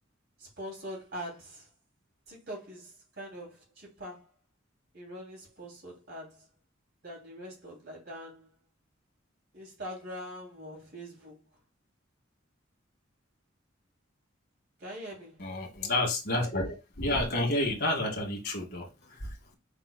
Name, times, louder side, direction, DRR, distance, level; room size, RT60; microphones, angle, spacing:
voice 1, 0.4-1.7 2.3-4.3 4.9-6.5 7.0-8.5 9.5-11.4 14.8-15.4, equal, 60° right, 2.8 m, -43 dB
voice 2, 15.4-19.5, left 1 dB, 60° left, 1.8 m, -30 dB
5.9 x 4.0 x 2.2 m
head